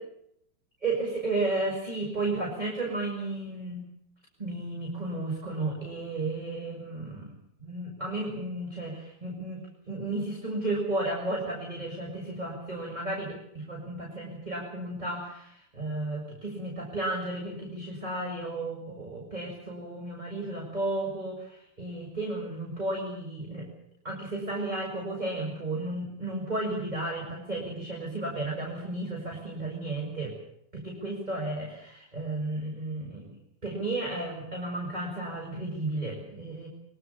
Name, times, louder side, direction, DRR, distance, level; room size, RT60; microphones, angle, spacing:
voice 1, 0.8-3.8 4.4-7.3 7.6-23.7 24.0-30.3 30.7-33.3 33.6-36.7, right 2 dB, 10° right, -1 dB, 6.8 m, -33 dB
25.0 x 23.5 x 7.0 m, 0.73 s
omnidirectional pair, 4.3 m